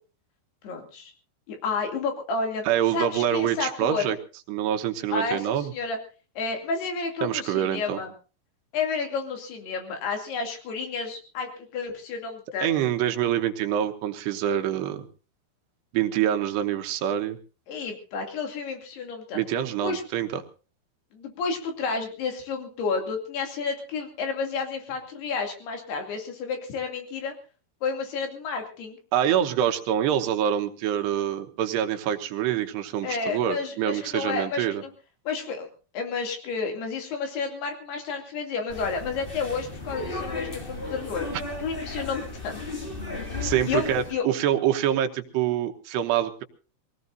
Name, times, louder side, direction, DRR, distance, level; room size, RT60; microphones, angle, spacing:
voice 1, 0.6-1.1 1.5-2.7 2.9-4.1 5.1-6.0 6.4-8.1 8.7-12.7 17.7-19.4 19.8-20.0 21.1-27.3 27.8-29.0 33.0-34.9 35.3-35.7 35.9-41.3 41.6-42.6 43.7-44.2, left 4 dB, 80° left, 4 dB, 4.6 m, -31 dB
voice 2, 2.6-4.2 4.5-5.7 7.2-8.0 12.6-15.1 15.9-17.4 19.3-20.4 29.1-34.8 43.4-46.4, right 10 dB, 90° right, 6 dB, 3.3 m, -26 dB
sound 1, 38.7-44.1, left 2 dB, 20° left, 1.4 m, -35 dB
24.0 x 17.5 x 2.6 m, 0.35 s
omnidirectional pair, 4.6 m